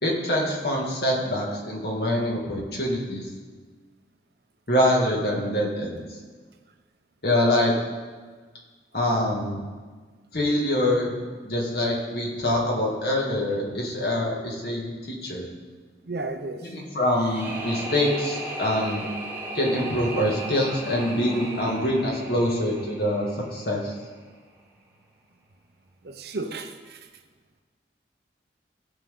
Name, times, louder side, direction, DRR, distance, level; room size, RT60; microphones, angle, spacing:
voice 1, 0.0-3.3 4.7-6.0 7.2-7.7 8.9-9.6 10.3-11.1 11.4-15.5 16.6-19.1 19.5-23.9, left 1 dB, 60° left, -2 dB, 2.1 m, -25 dB
voice 2, 16.0-16.7 26.0-27.0, right 3 dB, 60° right, 6 dB, 0.8 m, -33 dB
sound 1, 17.1-24.1, right 1 dB, 10° right, 1.5 m, -36 dB
16.5 x 5.9 x 3.8 m, 1.4 s
head